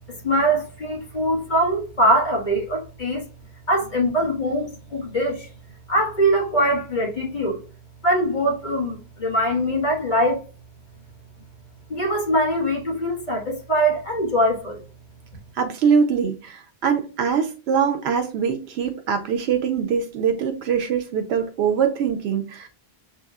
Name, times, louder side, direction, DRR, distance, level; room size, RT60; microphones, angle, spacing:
voice 1, 0.1-3.3 3.7-5.5 5.9-7.6 8.0-10.4 11.9-14.8, equal, 50° left, 1.8 m, -22 dB
voice 2, 15.6-22.7, right 6 dB, 85° right, 0.9 m, -23 dB
6.9 x 2.9 x 2.3 m
omnidirectional pair, 1.1 m